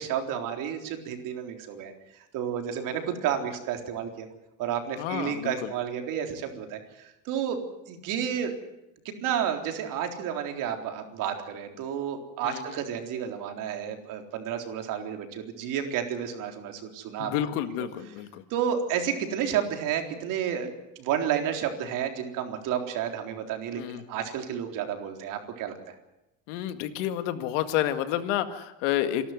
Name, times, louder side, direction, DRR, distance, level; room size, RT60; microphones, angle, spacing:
voice 1, 0.0-1.9 2.3-4.3 4.6-6.8 7.3-7.6 7.9-8.5 9.1-17.3 18.5-25.9, right 9 dB, 60° right, 5 dB, 3.9 m, -31 dB
voice 2, 5.0-5.7 12.4-12.8 17.2-18.4 23.8-24.0 26.5-29.3, left 12 dB, 90° left, 9 dB, 2.0 m, -30 dB
27.5 x 12.5 x 9.5 m, 0.94 s
cardioid pair, 130°, 35 cm